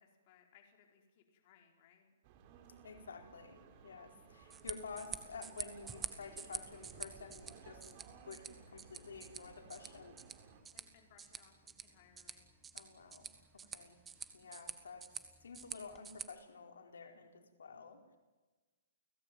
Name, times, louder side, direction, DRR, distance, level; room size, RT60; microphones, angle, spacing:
voice 1, 0.0-2.2 10.7-12.5, left 8 dB, 35° left, 2 dB, 4.4 m, -67 dB
sound 1, 2.2-10.6, right 6 dB, 30° right, 4.0 m, -59 dB
voice 2, 2.8-10.2 12.7-14.0 14.3-15.1 15.4-18.2, left 5 dB, 85° left, 4 dB, 4.5 m, -51 dB
sound 2, 4.4-16.3, right 6 dB, 10° right, 1.5 m, -49 dB
29.5 x 17.0 x 9.3 m, 1.3 s
hypercardioid pair, 165°, 0 cm